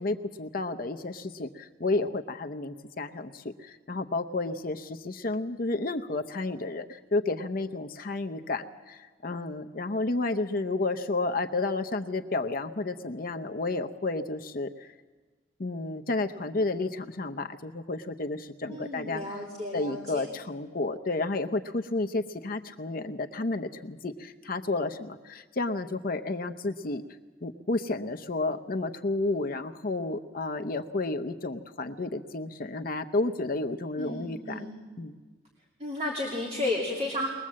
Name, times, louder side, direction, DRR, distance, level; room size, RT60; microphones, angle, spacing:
voice 1, 0.0-14.9 15.6-19.4 19.7-27.0 27.4-34.7 35.0-35.2, left 2 dB, 45° left, 7 dB, 0.7 m, -31 dB
voice 2, 18.7-20.2 34.0-34.8 35.8-37.3, left 1 dB, 30° right, -1 dB, 2.5 m, -33 dB
21.5 x 21.0 x 7.5 m, 1.4 s
head